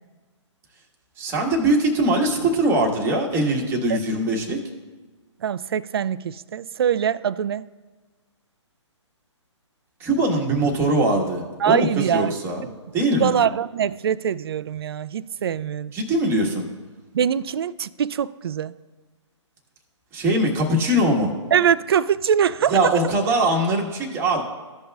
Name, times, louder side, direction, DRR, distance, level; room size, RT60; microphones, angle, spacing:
voice 1, 1.2-4.6 10.0-12.7 12.9-13.3 15.9-16.7 20.1-21.3 22.7-24.4, right 1 dB, 15° right, 1.4 m, -21 dB
voice 2, 5.4-7.6 11.6-12.3 13.2-15.9 17.1-18.7 21.5-22.8, right 8 dB, 55° right, 0.4 m, -23 dB
15.0 x 5.4 x 2.3 m
figure-of-eight pair, 140°, 16 cm